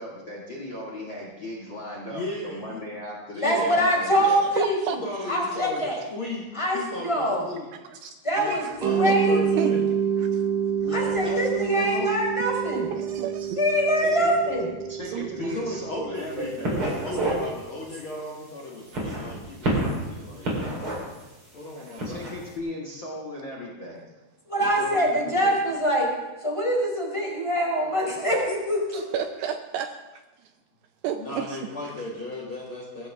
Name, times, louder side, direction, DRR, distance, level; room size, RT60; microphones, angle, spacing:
voice 1, 0.0-4.5 14.0-14.3 14.9-16.8 22.0-24.1, left 1 dB, 40° left, -3 dB, 1.9 m, -37 dB
voice 2, 2.1-2.8 3.3-3.9 5.0-7.7 8.3-9.8 10.8-12.1 15.3-20.9 21.5-22.3 24.6-25.6 31.2-33.1, left 1 dB, 75° left, -3 dB, 1.2 m, -36 dB
voice 3, 3.4-5.0 5.3-6.0 6.5-7.4 8.2-8.7 8.9-9.7 10.9-12.9 13.6-14.7 24.5-26.1 26.4-29.2, equal, 5° left, -3 dB, 3.5 m, -24 dB
voice 4, 4.2-5.0 7.8-9.7 10.2-10.4 12.6-13.6 15.1-15.6 21.8-22.0 28.9-30.5 31.0-31.7, right 9 dB, 80° right, 8 dB, 2.5 m, -33 dB
Mallet percussion, 8.8-17.6, right 8 dB, 65° right, 1.7 m, -28 dB
sound 1, 16.2-16.4 16.6-17.4 17.8-18.0 18.8-20.0 20.4-21.2 21.9-22.3, right 1 dB, 30° right, 4.3 m, -28 dB
22.5 x 14.0 x 3.6 m, 1.1 s
omnidirectional pair, 5.2 m